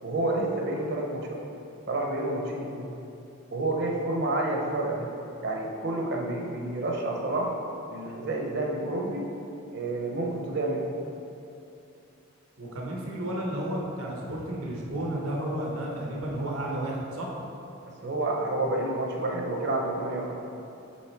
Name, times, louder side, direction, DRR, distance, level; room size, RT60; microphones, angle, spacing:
voice 1, 0.0-1.4 1.9-2.9 3.5-5.1 5.4-7.5 7.9-9.3 9.7-10.8 18.0-20.3, right 2 dB, 50° right, 0 dB, 0.8 m, -29 dB
voice 2, 12.6-17.3, right 1 dB, 85° right, -2 dB, 1.2 m, -32 dB
7.3 x 3.9 x 4.5 m, 2.7 s
head